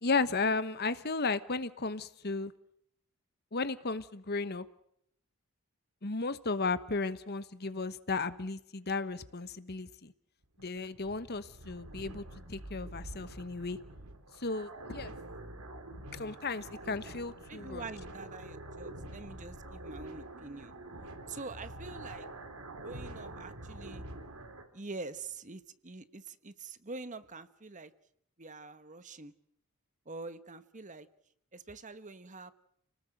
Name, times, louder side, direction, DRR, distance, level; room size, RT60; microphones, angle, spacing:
voice 1, 0.0-2.5 3.5-4.7 6.0-10.1 10.6-12.2 12.5-13.8 14.4-15.1 16.1-17.8, left 3 dB, 45° left, 13 dB, 1.2 m, -34 dB
sound 1, 10.4-24.6, right 1 dB, 80° right, 3.6 m, -46 dB
voice 2, 17.5-20.7 21.3-22.3 22.8-24.0 24.7-27.9 28.4-29.3 30.1-31.1 31.5-32.5, right 3 dB, 35° right, 12 dB, 1.2 m, -45 dB
30.0 x 19.0 x 7.9 m, 0.73 s
head